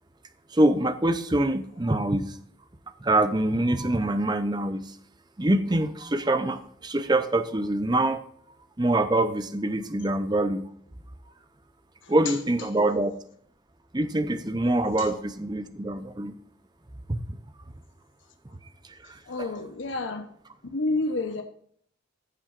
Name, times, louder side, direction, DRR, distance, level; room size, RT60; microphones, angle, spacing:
voice 1, 0.5-2.3 3.0-4.8 5.4-8.2 8.8-10.6 12.1-13.1 13.9-16.3 17.1-17.2 19.1-19.5, right 1 dB, 20° right, 10 dB, 0.7 m, -25 dB
voice 2, 12.0-12.3 15.0-15.1 19.3-20.3 20.7-21.4, left 2 dB, 65° left, 5 dB, 1.0 m, -29 dB
14.5 x 7.7 x 2.5 m, 0.62 s
head